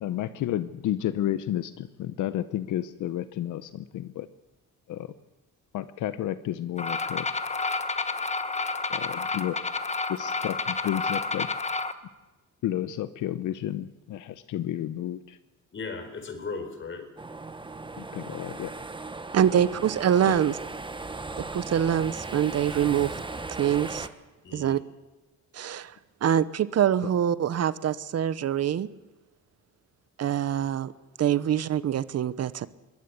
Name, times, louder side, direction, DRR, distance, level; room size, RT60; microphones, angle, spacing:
voice 1, 0.0-4.3 4.9-5.1 5.7-7.3 8.9-9.6 10.1-11.5 12.6-15.4 18.0-18.7 20.3-20.4, left 12 dB, 80° left, 0.9 m, -31 dB
sound 1, 6.8-11.9, left 4 dB, 20° left, 1.3 m, -30 dB
voice 2, 15.7-17.1 19.5-19.6 24.4-24.8, left 4 dB, 40° left, 4.7 m, -37 dB
sound 2, 17.2-24.1, right 3 dB, 15° right, 1.3 m, -37 dB
voice 3, 19.3-20.6 21.5-23.1 23.6-24.1 24.5-24.8 25.5-25.9 26.2-28.9 30.2-30.9 31.2-32.7, right 9 dB, 55° right, 0.9 m, -24 dB
22.0 x 18.0 x 8.3 m
cardioid pair, 90°, 30 cm